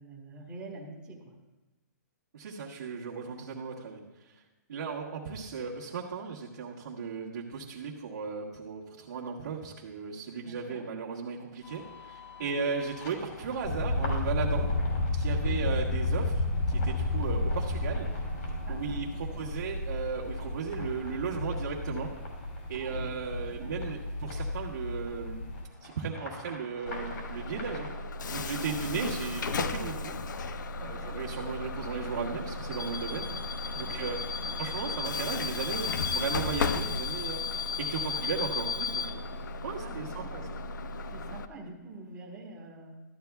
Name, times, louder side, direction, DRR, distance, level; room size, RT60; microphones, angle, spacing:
voice 1, 0.0-1.3 10.4-10.9 12.4-12.6 15.4-15.6 18.6-19.4 22.7-23.7 28.6-29.2 30.7-31.2 33.7-34.0 34.4-34.6 38.1-38.3 39.8-40.5 41.1-43.0, right 2 dB, 10° right, -5 dB, 1.4 m, -47 dB
voice 2, 2.3-4.4 4.7-14.7 15.1-18.1 18.7-22.1 22.7-25.5 25.8-27.9 28.3-30.2 30.8-33.4 33.7-34.2 34.6-37.4 37.8-39.2 39.6-40.4, right 5 dB, 55° right, -7 dB, 1.6 m, -36 dB
sound 1, 11.6-27.9, left 2 dB, 60° left, 3.0 m, -47 dB
sound 2, 13.6-25.6, left 2 dB, 35° left, 1.0 m, -32 dB
Bus / Alarm, 26.9-41.5, left 4 dB, 80° left, 0.6 m, -34 dB
13.5 x 9.5 x 2.3 m, 1.2 s
hypercardioid pair, 170°, 10 cm